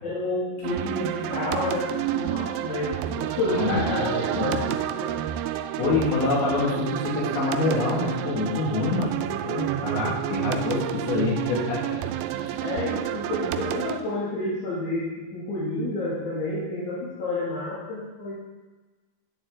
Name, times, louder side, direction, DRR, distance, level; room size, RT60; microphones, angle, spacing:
voice 1, 0.0-5.1 12.6-18.4, left 2 dB, 55° left, -9 dB, 3.4 m, -30 dB
sound 1, 0.6-14.0, right 12 dB, 85° right, 2.4 m, -30 dB
voice 2, 3.5-4.6 5.8-9.1 9.4-12.0, left 3 dB, 90° left, -5 dB, 3.8 m, -26 dB
9.4 x 9.2 x 3.7 m, 1.3 s
omnidirectional pair, 4.2 m